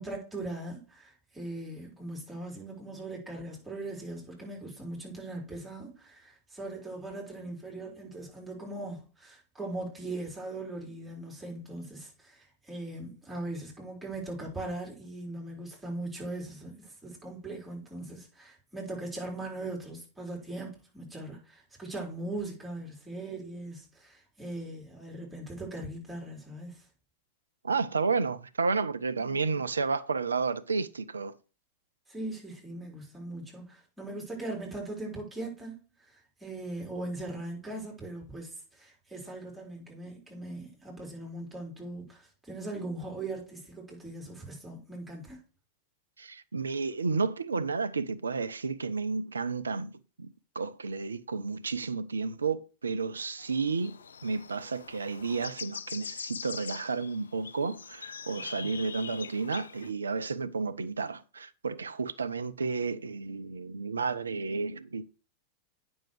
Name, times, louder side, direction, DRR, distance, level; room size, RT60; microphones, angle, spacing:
voice 1, 0.0-26.8 29.2-29.6 32.1-35.7 36.4-45.4 58.5-58.7, right 2 dB, 5° right, 4.2 m, -40 dB
voice 2, 27.6-31.3 46.2-49.9 50.2-54.0 54.2-65.0, right 4 dB, 75° right, 0.5 m, -32 dB
sound 1, 53.4-59.9, left 6 dB, 70° left, 0.4 m, -43 dB
9.0 x 6.3 x 4.6 m
figure-of-eight pair, 90°, 0 cm